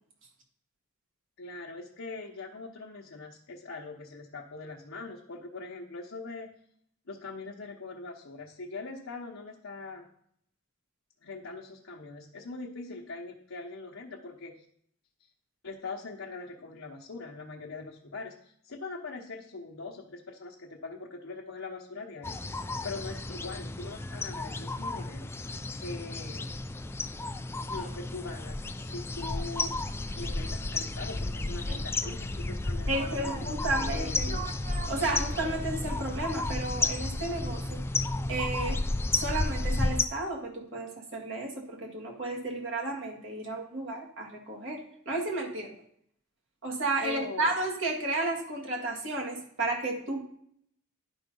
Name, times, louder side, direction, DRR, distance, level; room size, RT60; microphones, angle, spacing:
voice 1, 1.4-6.5 7.1-10.1 11.2-14.7 15.6-22.4 22.8-26.5 27.7-29.9 30.2-34.5 47.0-47.5, left 3 dB, 70° left, -2 dB, 0.9 m, -42 dB
sound 1, 22.2-40.1, left 2 dB, 10° left, 0.3 m, -32 dB
sound 2, 31.1-36.2, right 4 dB, 35° right, 0.6 m, -46 dB
voice 2, 32.9-34.3 34.9-37.8 38.3-38.8 39.2-44.8 45.1-45.8 46.6-50.2, right 2 dB, 65° right, 0 dB, 1.9 m, -32 dB
11.0 x 4.0 x 5.4 m, 0.68 s
head